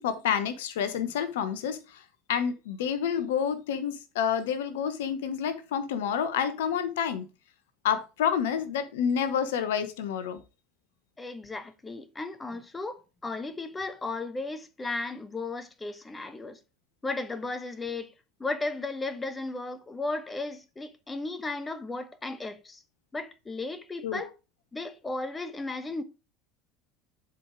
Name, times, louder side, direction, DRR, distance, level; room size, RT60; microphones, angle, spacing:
voice 1, 0.0-2.0 2.3-7.3 7.8-10.4 24.0-24.2, left 8 dB, 65° left, 1.0 m, -29 dB
voice 2, 11.2-16.6 17.0-18.1 18.4-22.8 23.1-24.3 24.7-26.0, left 3 dB, 15° left, 1.0 m, -35 dB
11.0 x 4.8 x 3.6 m
figure-of-eight pair, 70°, 0 cm